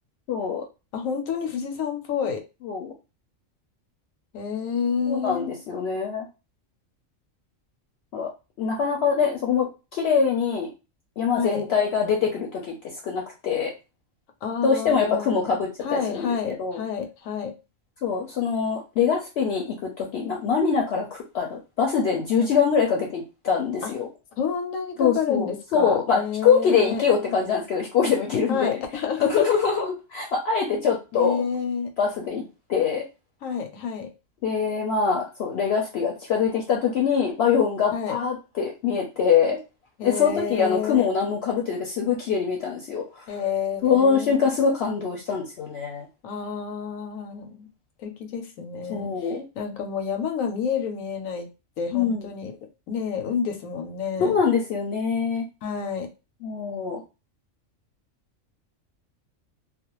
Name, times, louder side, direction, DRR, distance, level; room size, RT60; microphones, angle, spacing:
voice 1, 0.3-0.6 2.6-2.9 5.1-6.3 8.1-8.3 8.6-10.7 11.2-13.7 14.6-16.8 18.0-24.1 25.0-28.8 29.3-31.4 32.0-32.4 32.7-33.1 34.4-39.6 40.0-43.3 43.8-46.1 48.9-49.4 51.9-52.2 54.2-55.4 56.4-57.0, left 6 dB, 65° left, 0 dB, 0.7 m, -24 dB
voice 2, 0.9-2.4 4.3-5.6 11.3-11.6 14.4-15.5 15.8-17.5 23.8-23.9 24.4-27.4 28.5-29.5 31.1-31.9 33.4-34.1 37.9-38.2 40.0-41.1 43.3-44.5 46.2-47.7 48.0-49.3 49.6-51.5 51.8-52.6 52.9-54.3 55.6-56.1, left 7 dB, 85° left, 4 dB, 1.0 m, -29 dB
2.4 x 2.1 x 2.9 m, 0.29 s
omnidirectional pair, 1.3 m